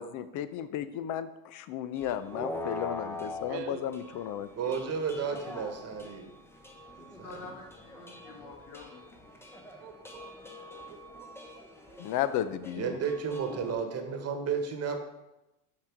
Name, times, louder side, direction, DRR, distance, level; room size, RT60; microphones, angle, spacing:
voice 1, 0.0-4.5 12.0-13.0, left 10 dB, 45° left, 13 dB, 0.5 m, -34 dB
sound 1, 2.0-13.7, left 1 dB, 5° left, 0.8 m, -44 dB
voice 2, 3.5-3.8 9.8-10.4 10.9-12.0, right 6 dB, 65° right, 6 dB, 1.0 m, -45 dB
voice 3, 4.6-6.3 7.2-7.3 12.7-15.0, right 6 dB, 35° right, 5 dB, 1.3 m, -32 dB
voice 4, 7.1-9.2, left 3 dB, 80° left, 0 dB, 1.4 m, -47 dB
5.8 x 4.8 x 4.5 m, 0.96 s
hypercardioid pair, 85°, 45 cm